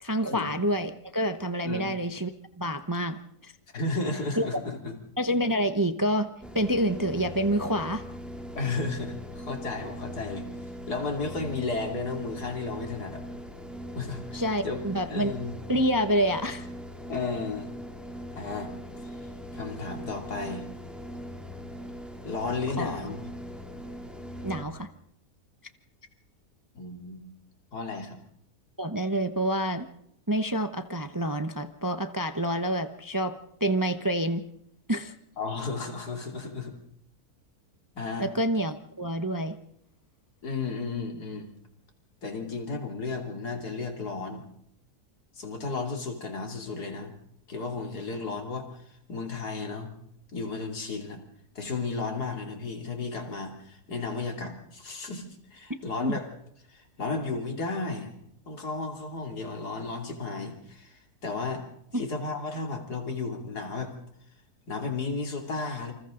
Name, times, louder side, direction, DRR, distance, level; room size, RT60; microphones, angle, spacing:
voice 1, 0.0-2.3 2.6-3.2 3.4-3.5 4.4-4.5 5.2-6.3 6.5-8.0 14.3-15.3 15.7-16.7 22.8-23.0 24.4-24.9 28.8-29.9 30.3-33.3 33.6-34.4 34.9-35.1 38.2-39.6 56.0-56.1 61.9-62.0, equal, 20° right, 9 dB, 0.7 m, -27 dB
voice 2, 1.6-1.9 3.7-5.0 8.6-10.5 10.9-13.2 13.9-14.8 15.1-15.5 17.1-17.7 18.3-18.7 19.0-20.7 22.2-23.3 26.7-27.2 27.7-28.2 35.4-36.7 38.0-38.3 40.4-41.5 42.2-44.4 45.4-47.1 47.5-49.9 50.3-51.2 51.6-56.3 56.7-58.1 58.5-61.6 61.9-63.9 64.7-65.9, left 3 dB, 85° left, 3 dB, 3.5 m, -33 dB
sound 1, 6.4-24.6, equal, ahead, 2.8 m, -41 dB
28.0 x 26.5 x 3.9 m, 0.74 s
omnidirectional pair, 1.6 m